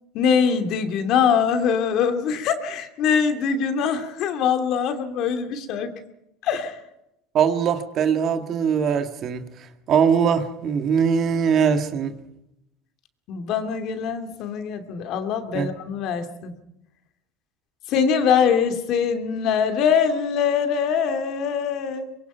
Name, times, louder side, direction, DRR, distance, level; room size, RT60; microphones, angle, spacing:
voice 1, 0.1-5.9 6.4-6.8 13.3-16.5 17.9-22.1, left 7 dB, 55° left, 2.8 m, -23 dB
voice 2, 7.3-9.5 9.9-12.1 15.5-15.7, right 7 dB, 45° right, 2.0 m, -21 dB
24.0 x 22.5 x 5.7 m
supercardioid pair, 115°, 0 cm